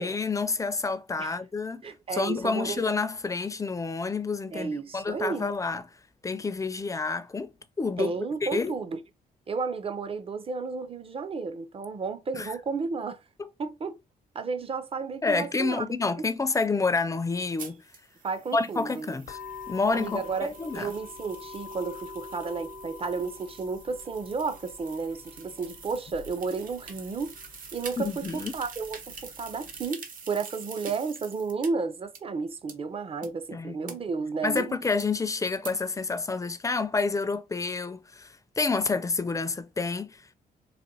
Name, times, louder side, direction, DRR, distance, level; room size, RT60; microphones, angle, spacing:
voice 1, 0.0-1.8 2.1-5.8 6.2-7.5 7.8-8.1 8.4-8.7 12.3-12.5 13.4-13.5 15.2-17.8 18.5-19.4 19.7-20.9 28.0-28.5 33.5-34.0 34.4-40.3, left 4 dB, 20° left, 0.5 m, -29 dB
voice 2, 1.8-2.8 4.5-5.5 8.0-9.0 9.5-13.2 13.6-14.0 14.3-15.9 16.2-16.3 18.2-19.2 19.9-27.3 27.7-34.8, right 4 dB, 35° right, 0.6 m, -32 dB
sound 1, 17.6-31.7 32.2-32.3 32.7-32.8 33.2-33.3 33.9-34.0 34.6-34.7 35.0-35.1 35.6-35.7, right 5 dB, 60° right, 0.9 m, -46 dB
sound 2, 19.3-29.9, left 5 dB, 70° left, 0.7 m, -46 dB
4.1 x 2.6 x 2.7 m
cardioid pair, 90°, 16 cm